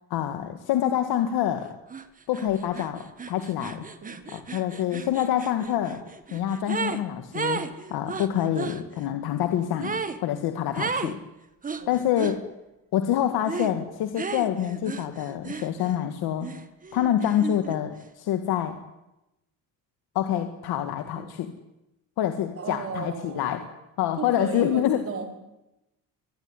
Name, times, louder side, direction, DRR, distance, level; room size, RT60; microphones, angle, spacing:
voice 1, 0.1-1.7 2.3-3.8 4.3-6.0 6.3-11.2 11.9-12.4 12.9-16.5 16.9-18.8 20.2-21.5 22.2-23.6 24.0-25.0, left 11 dB, 85° left, 6 dB, 2.0 m, -26 dB
sound 1, 1.9-2.1 2.3-7.0 7.3-8.8 9.8-10.2 10.8-11.2 11.6-12.4 13.5-13.8 14.2-16.0 16.4-17.8, right 5 dB, 20° right, 1.6 m, -34 dB
voice 2, 22.6-23.7 24.2-25.3, right 5 dB, 40° right, 4 dB, 4.8 m, -35 dB
24.5 x 20.0 x 9.9 m, 0.93 s
cardioid pair, 150°, 36 cm